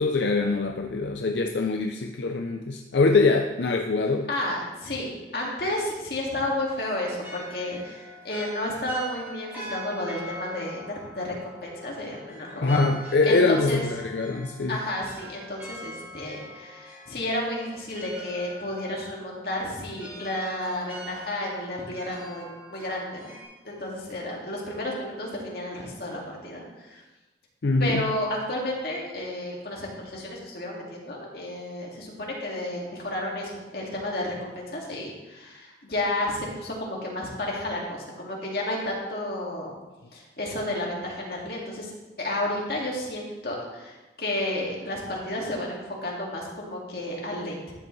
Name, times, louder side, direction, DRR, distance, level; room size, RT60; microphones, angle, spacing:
voice 1, 0.0-4.3 12.6-14.8 27.6-28.0, left 3 dB, 85° left, 4 dB, 0.5 m, -23 dB
voice 2, 4.3-12.8 13.3-13.8 14.7-23.3 23.6-27.0 27.8-39.7 40.1-41.9 42.2-47.6, left 1 dB, 60° left, -2 dB, 2.1 m, -32 dB
sound 1, 6.7-23.4, equal, 10° right, 3.4 m, -44 dB
12.5 x 7.6 x 3.2 m, 1.1 s
head